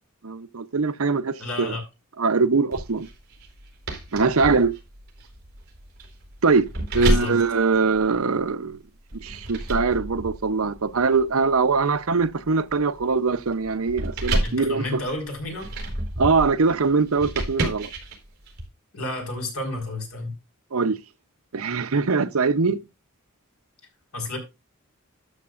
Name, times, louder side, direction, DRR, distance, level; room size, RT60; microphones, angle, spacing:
voice 1, 0.2-1.8 2.2-3.1 4.1-4.7 6.4-6.6 6.9-8.8 9.2-15.0 16.2-17.9 20.7-21.0 21.5-22.8, right 4 dB, 80° right, 0.7 m, -22 dB
voice 2, 1.4-1.8 6.9-7.4 14.4-15.7 18.9-20.3 24.1-24.4, left 2 dB, 80° left, 4.4 m, -31 dB
sound 1, 2.7-8.5 9.1-18.6, right 1 dB, 50° right, 4.3 m, -31 dB
12.5 x 7.6 x 2.5 m
head